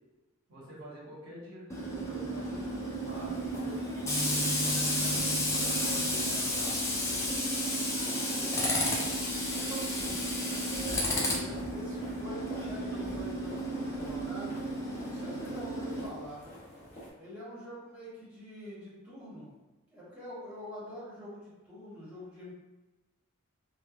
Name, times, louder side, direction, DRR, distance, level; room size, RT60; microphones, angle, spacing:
voice 1, 0.5-3.8 4.2-6.7, equal, 65° right, -7 dB, 1.0 m, -47 dB
Tools, 1.7-16.0, equal, 15° left, 0.3 m, -32 dB
sound 1, 2.9-17.1, left 1 dB, 30° left, 0.9 m, -49 dB
voice 2, 8.4-9.1 9.5-10.2 10.7-14.6 15.0-16.4 17.2-19.5 19.9-22.5, equal, 5° right, -10 dB, 1.0 m, -45 dB
3.0 x 2.1 x 2.4 m, 1.1 s
head